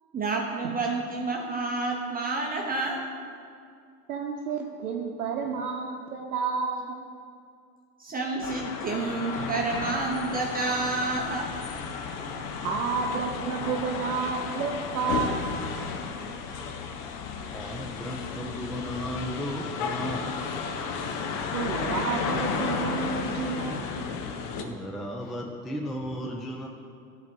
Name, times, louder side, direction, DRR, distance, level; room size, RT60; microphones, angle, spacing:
voice 1, 0.1-3.0 8.0-11.5, right 3 dB, 20° right, -1 dB, 0.8 m, -29 dB
voice 2, 4.1-7.0 12.6-15.6 21.5-23.8, right 5 dB, 80° right, -1 dB, 0.8 m, -30 dB
sound 1, 8.4-24.6, left 5 dB, 45° left, 0.9 m, -33 dB
voice 3, 17.5-20.4 24.6-26.7, equal, ahead, 1 dB, 0.3 m, -35 dB
10.5 x 4.1 x 5.3 m, 2.4 s
hypercardioid pair, 90°, 44 cm